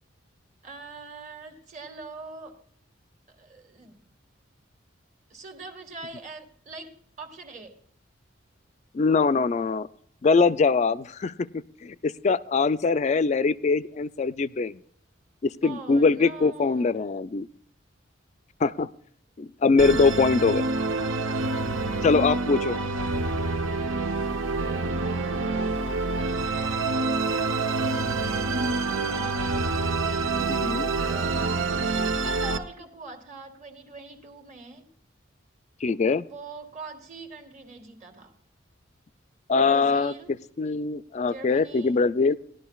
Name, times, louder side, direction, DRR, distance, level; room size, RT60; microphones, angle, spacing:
voice 1, 0.6-2.6 3.3-4.1 5.3-7.8 15.6-16.9 25.0-25.9 26.3-29.4 31.0-34.9 36.3-38.4 39.6-40.3 41.2-42.0, right 3 dB, 40° right, 4 dB, 1.5 m, -43 dB
voice 2, 8.9-9.9 10.2-14.8 15.4-17.5 18.6-18.9 19.4-20.6 22.0-22.8 30.4-30.9 35.8-36.3 39.5-40.1 40.6-42.3, left 4 dB, 35° left, 16 dB, 0.3 m, -23 dB
Musical instrument, 19.8-32.6, right 3 dB, 80° right, 0.8 m, -27 dB
18.5 x 12.0 x 2.3 m, 0.67 s
head